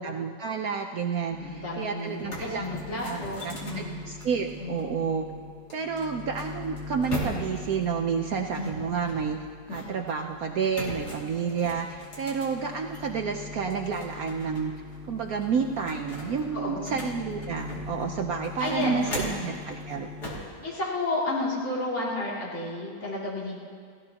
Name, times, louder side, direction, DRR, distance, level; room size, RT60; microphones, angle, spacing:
voice 1, 0.0-2.7 2.9-5.3 5.7-9.4 9.7-14.7 15.1-20.1, right 6 dB, 65° right, 3 dB, 1.1 m, -30 dB
sound 1, 1.3-1.9 2.3-20.4, left 4 dB, 10° right, 0.7 m, -42 dB
voice 2, 1.4-4.0 16.5-17.1 18.6-19.3 20.6-23.6, left 2 dB, 40° left, -6 dB, 3.2 m, -31 dB
sound 2, 1.7-1.8 2.1-4.8 5.7-7.7 8.5-10.1 10.7-13.1 13.5-14.6 14.9-15.0 15.4-18.0 18.4-19.6 20.2-20.5, equal, 60° left, 3.2 m, -38 dB
29.5 x 15.5 x 2.9 m, 2.2 s
omnidirectional pair, 1.9 m